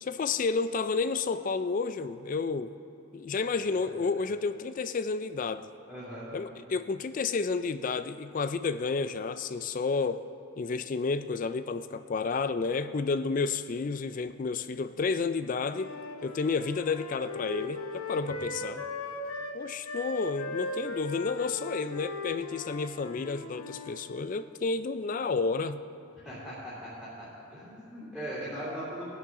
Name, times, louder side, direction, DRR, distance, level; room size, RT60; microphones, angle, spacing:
voice 1, 0.0-2.7 3.1-5.7 6.3-10.2 10.6-15.9 16.2-18.8 19.5-25.8, left 4 dB, 40° left, 12 dB, 0.3 m, -31 dB
voice 2, 5.9-6.2 18.2-18.5 26.2-27.1 27.5-29.1, equal, ahead, -13 dB, 3.1 m, -39 dB
Wind instrument woodwind instrument, 15.6-24.0, left 3 dB, 80° left, 1.1 m, -38 dB
19.0 x 10.5 x 3.7 m, 2.7 s
head